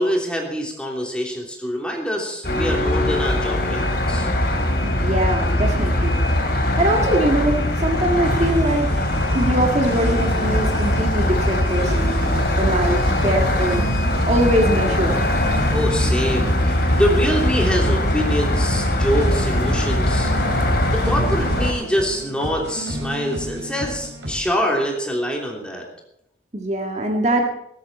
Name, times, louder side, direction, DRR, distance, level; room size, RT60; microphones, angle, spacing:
voice 1, 0.0-4.3 15.7-20.3 20.9-25.9, equal, 5° left, -1 dB, 3.1 m, -25 dB
sound 1, 2.4-21.7, left 1 dB, 60° left, 3.0 m, -21 dB
voice 2, 4.8-6.2 6.8-8.9 9.3-13.8 14.3-15.2 26.5-27.5, right 1 dB, 40° right, 2 dB, 1.8 m, -22 dB
sound 2, 8.2-24.4, right 1 dB, 90° right, 5.2 m, -32 dB
17.5 x 13.5 x 4.3 m, 0.79 s
head